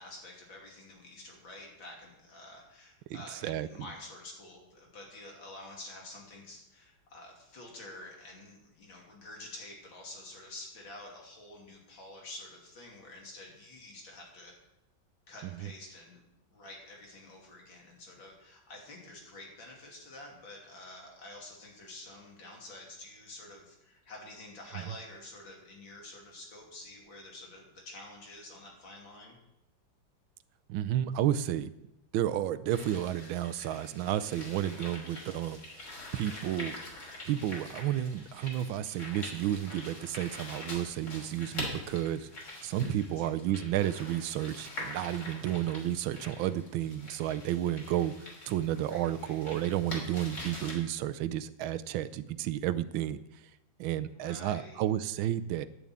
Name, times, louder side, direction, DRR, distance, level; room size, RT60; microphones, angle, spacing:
voice 1, 0.0-14.5 15.3-16.2 16.5-29.4 43.2-43.3 48.9-49.4 54.1-54.8, left 2 dB, 80° left, 0 dB, 3.5 m, -48 dB
voice 2, 3.1-3.7 15.5-15.7 30.7-31.7 32.1-35.6 36.1-36.7 37.2-42.3 42.6-53.2 53.8-55.7, right 12 dB, 85° right, 13 dB, 1.5 m, -32 dB
sound 1, 32.7-50.7, left 1 dB, 60° left, 3.8 m, -44 dB
10.5 x 7.0 x 8.8 m, 0.88 s
omnidirectional pair, 2.1 m